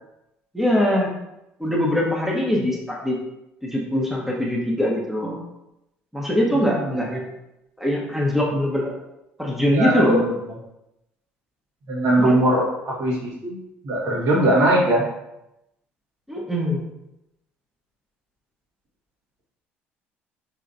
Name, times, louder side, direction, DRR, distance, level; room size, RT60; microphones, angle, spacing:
voice 1, 0.5-1.1 1.6-3.2 3.6-5.4 6.1-7.3 7.8-8.9 9.4-10.2 12.2-12.3 16.3-16.8, equal, 5° right, -3 dB, 1.1 m, -22 dB
voice 2, 6.7-7.1 9.7-10.3 11.9-15.0, right 1 dB, 60° right, -5 dB, 1.6 m, -21 dB
4.6 x 3.7 x 2.7 m, 0.89 s
hypercardioid pair, 55°, 6 cm